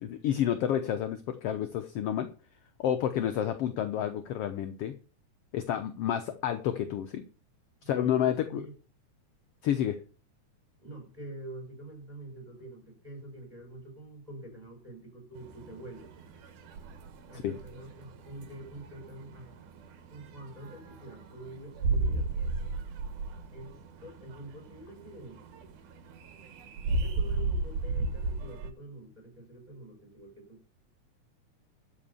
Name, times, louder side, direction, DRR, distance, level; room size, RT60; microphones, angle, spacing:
voice 1, 0.0-2.3 2.8-4.9 5.5-7.2 7.8-8.7 9.6-10.0 17.3-17.5, left 10 dB, 70° left, 9 dB, 1.5 m, -30 dB
voice 2, 7.8-8.7 10.8-16.1 17.3-19.5 20.1-22.5 23.5-25.4 27.0-30.7, right 2 dB, 10° right, 2 dB, 6.1 m, -46 dB
sound 1, 15.3-28.7, right 3 dB, 80° right, 2.7 m, -35 dB
13.0 x 5.5 x 7.0 m, 0.37 s
omnidirectional pair, 3.6 m